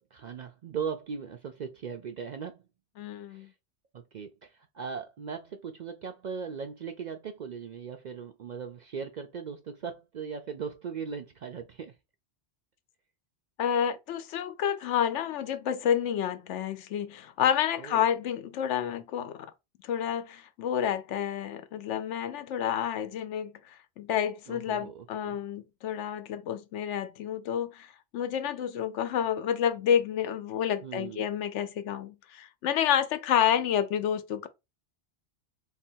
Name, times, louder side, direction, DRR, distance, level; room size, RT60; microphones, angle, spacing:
voice 1, 0.0-2.6 3.3-3.5 3.9-12.0 17.8-18.0 24.5-25.4 30.8-31.2, right 6 dB, 60° right, 0.5 m, -39 dB
voice 2, 3.0-3.5 13.6-19.5 19.8-34.5, left 9 dB, 85° left, 0.9 m, -29 dB
3.5 x 2.5 x 4.3 m
omnidirectional pair, 1.2 m